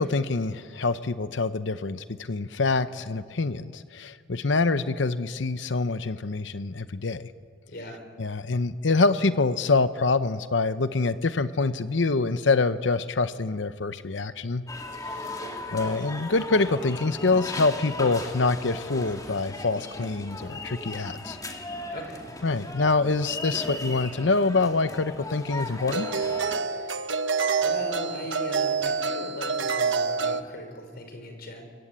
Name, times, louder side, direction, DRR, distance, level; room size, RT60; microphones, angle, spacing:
voice 1, 0.0-7.3 8.2-14.6 15.0-15.3 15.7-21.4 22.4-26.1, left 3 dB, 80° left, 12 dB, 0.8 m, -25 dB
voice 2, 7.7-8.0 15.1-15.5 21.9-22.2 26.8-27.1 27.6-31.6, left 1 dB, 55° left, 4 dB, 5.5 m, -39 dB
sound 1, 14.7-26.6, left 2 dB, 20° left, 2.2 m, -37 dB
sound 2, 24.5-24.7 25.9-30.4, right 5 dB, 85° right, 1.1 m, -27 dB
28.5 x 23.0 x 8.8 m, 2.1 s
head